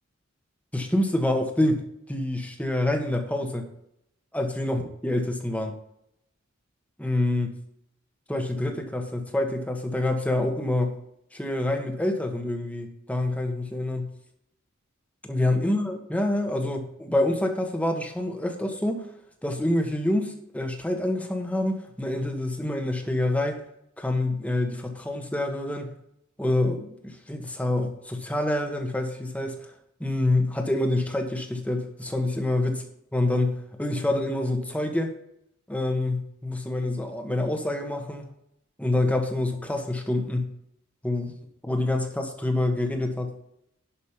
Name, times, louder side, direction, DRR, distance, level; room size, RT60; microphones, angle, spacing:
voice 1, 0.7-3.7 4.3-5.7 7.0-7.6 8.3-11.0 11.3-14.1 15.2-19.1 19.4-23.6 24.0-25.9 26.4-29.6 30.0-32.8 33.1-35.1 35.7-38.3 38.8-40.5 41.0-41.4 41.6-43.3, left 1 dB, 5° left, 4 dB, 1.3 m, -27 dB
11.5 x 5.3 x 5.6 m, 0.75 s
head